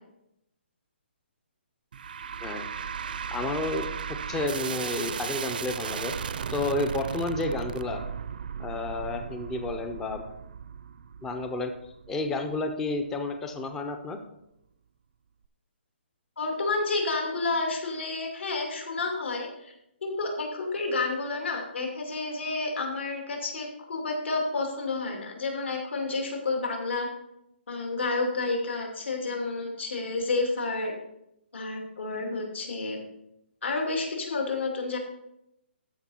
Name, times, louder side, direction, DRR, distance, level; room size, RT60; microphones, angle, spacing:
sound 1, 1.9-13.2, right 7 dB, 50° right, 0.5 m, -36 dB
voice 1, 3.3-6.1 6.5-8.0 8.6-10.2 11.2-11.7 12.1-14.2, left 2 dB, 5° left, 6 dB, 0.4 m, -31 dB
voice 2, 16.4-19.7 20.0-27.1 27.7-30.9 31.5-33.0 33.6-35.0, left 3 dB, 80° left, 1 dB, 2.6 m, -30 dB
13.0 x 5.2 x 4.2 m, 0.81 s
hypercardioid pair, 170°, 6 cm